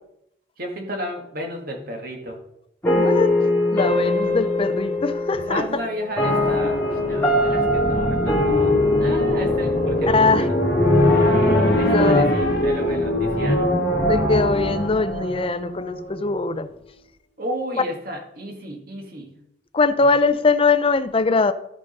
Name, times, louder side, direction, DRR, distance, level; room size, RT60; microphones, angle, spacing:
voice 1, 0.6-2.4 5.4-10.6 11.7-13.7 17.4-19.3 20.0-20.1, equal, 60° right, 1.9 m, -33 dB
sound 1, 2.8-13.9, left 2 dB, 10° left, 2.6 m, -22 dB
voice 2, 2.9-3.4 3.7-5.8 10.1-10.5 11.8-12.3 14.1-16.7 19.7-21.5, left 4 dB, 30° left, 0.6 m, -21 dB
sound 2, 6.2-16.2, equal, 65° left, 1.9 m, -23 dB
13.5 x 5.2 x 5.3 m
head